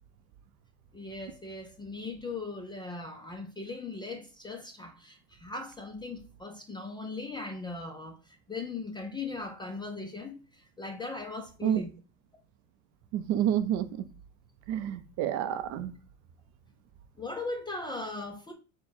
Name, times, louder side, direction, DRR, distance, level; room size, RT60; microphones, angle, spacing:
voice 1, 0.9-11.9 15.8-15.9 17.2-18.5, left 3 dB, 10° left, 0.4 m, -39 dB
voice 2, 13.1-14.0 14.7-15.9, right 10 dB, 45° right, 0.5 m, -29 dB
4.5 x 2.2 x 4.3 m
supercardioid pair, 115°, 42 cm